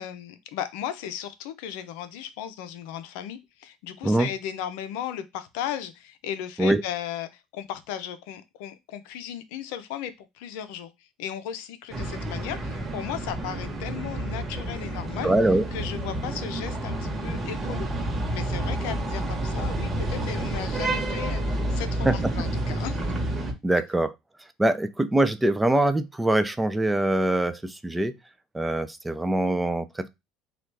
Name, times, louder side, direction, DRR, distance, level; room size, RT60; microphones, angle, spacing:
voice 1, 0.0-15.3 15.7-17.9 18.3-23.0, left 10 dB, 75° left, 0.5 m, -36 dB
sound 1, 11.9-23.5, right 1 dB, 30° right, 1.1 m, -29 dB
voice 2, 15.2-15.6 22.1-22.2 23.6-24.1 24.6-28.2 28.5-30.1, right 1 dB, 10° right, 0.4 m, -23 dB
2.9 x 2.4 x 3.3 m
hypercardioid pair, 70°, 0 cm